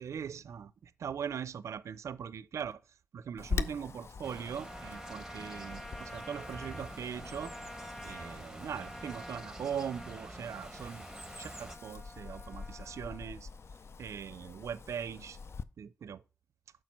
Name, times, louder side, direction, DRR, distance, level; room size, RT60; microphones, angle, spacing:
voice 1, 0.0-2.8 3.1-7.5 8.0-11.1 11.4-13.5 14.0-15.4 15.8-16.2, right 8 dB, 80° right, 0.4 m, -40 dB
Wind, 3.4-15.6, left 5 dB, 60° left, 0.4 m, -44 dB
sound 1, 4.2-11.8, right 1 dB, 10° right, 1.1 m, -48 dB
Trumpet, 4.6-13.3, equal, 10° left, 0.7 m, -50 dB
6.6 x 5.8 x 4.3 m
cardioid pair, 45°, 5 cm